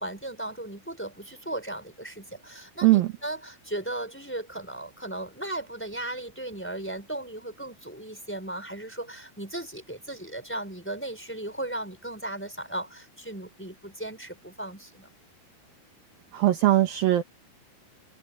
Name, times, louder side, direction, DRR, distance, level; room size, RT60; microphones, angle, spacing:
voice 1, 0.0-15.1, right 1 dB, 5° left, 3.7 m, -36 dB
voice 2, 16.3-17.2, right 15 dB, 85° right, 2.0 m, -20 dB
omnidirectional pair, 5.9 m